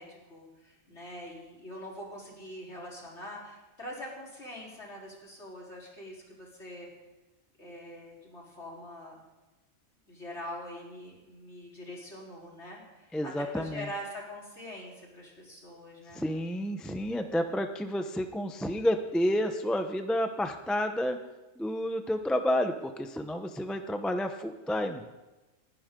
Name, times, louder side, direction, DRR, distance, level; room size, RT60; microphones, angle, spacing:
voice 1, 0.0-6.9 7.6-9.2 10.1-16.3, left 1 dB, 55° left, -3 dB, 4.2 m, -44 dB
voice 2, 13.1-13.9 16.1-21.2 21.6-25.0, equal, ahead, 6 dB, 0.6 m, -30 dB
29.5 x 10.5 x 3.8 m, 1.1 s
omnidirectional pair, 1.4 m